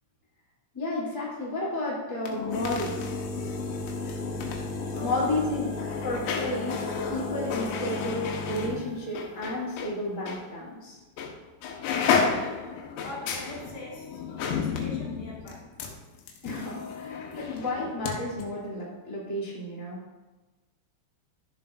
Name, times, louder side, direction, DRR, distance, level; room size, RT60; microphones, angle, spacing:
voice 1, 0.7-3.2 5.0-5.7 6.0-11.0 16.4-20.0, left 1 dB, 5° left, -8 dB, 1.9 m, -32 dB
sound 1, 2.2-9.9 10.3-10.4 11.2-11.4 11.6-18.1 18.4-18.5, left 5 dB, 85° left, 3.8 m, -32 dB
sound 2, 2.9-10.8, left 2 dB, 45° right, 1.7 m, -44 dB
voice 2, 4.9-5.5 12.1-15.8, left 2 dB, 40° left, -7 dB, 4.2 m, -43 dB
14.0 x 7.4 x 2.7 m, 1.2 s
omnidirectional pair, 6.0 m